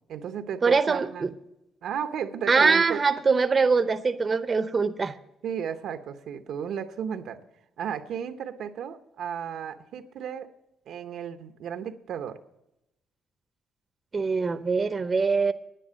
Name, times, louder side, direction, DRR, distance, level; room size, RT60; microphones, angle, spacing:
voice 1, 0.1-1.3 1.8-3.0 5.4-7.4 7.8-10.5 10.9-12.4, right 8 dB, 75° right, 8 dB, 0.8 m, -34 dB
voice 2, 0.6-1.3 2.5-5.1 14.1-15.5, right 4 dB, 35° right, 10 dB, 0.7 m, -23 dB
10.0 x 9.7 x 6.2 m, 0.90 s
cardioid pair, 90°, 0 cm